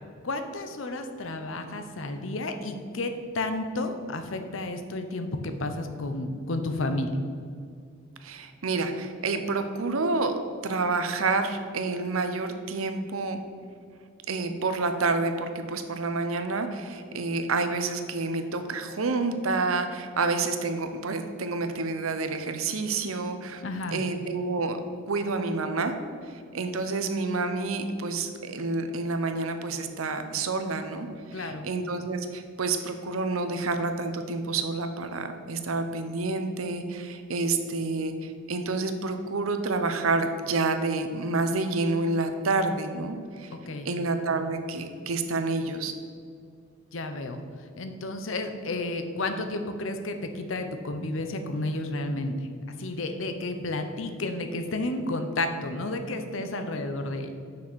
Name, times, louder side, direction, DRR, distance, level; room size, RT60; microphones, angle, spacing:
voice 1, 0.2-7.1 23.6-24.0 31.3-31.6 43.5-43.9 46.9-47.4 47.8-52.3 52.8-57.3, left 2 dB, 70° left, 7 dB, 0.8 m, -31 dB
voice 2, 8.2-10.3 10.6-13.4 14.3-23.6 23.9-24.8 25.1-25.9 26.3-43.5 43.8-45.9, right 3 dB, 90° right, 7 dB, 0.8 m, -29 dB
6.2 x 6.1 x 6.2 m, 2.2 s
head